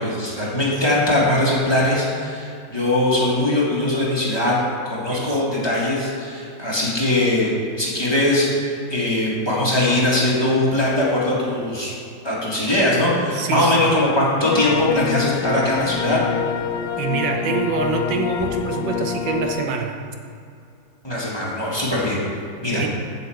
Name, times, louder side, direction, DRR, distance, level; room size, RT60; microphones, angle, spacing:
voice 1, 0.0-4.6 4.8-11.9 12.2-16.2 21.0-22.2 22.6-22.8, left 1 dB, 15° left, -7 dB, 1.9 m, -21 dB
voice 2, 5.1-5.4 13.3-13.9 17.0-20.0 22.7-22.9, right 5 dB, 85° right, 3 dB, 1.5 m, -25 dB
sound 1, 14.4-19.6, left 8 dB, 85° left, 1.2 m, -26 dB
8.0 x 5.9 x 7.8 m, 2.5 s
omnidirectional pair, 1.9 m